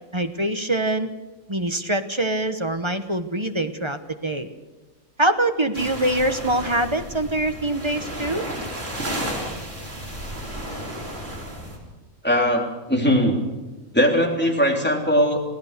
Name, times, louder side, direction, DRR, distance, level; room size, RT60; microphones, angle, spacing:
voice 1, 0.1-1.1 1.5-4.5 5.2-8.4, right 1 dB, 20° right, 8 dB, 1.0 m, -24 dB
sound 1, 5.7-11.8, right 1 dB, 55° right, 4.5 m, -33 dB
voice 2, 12.2-13.4 13.9-15.4, equal, 5° left, 0 dB, 3.4 m, -20 dB
27.5 x 16.5 x 6.7 m, 1.2 s
omnidirectional pair, 1.5 m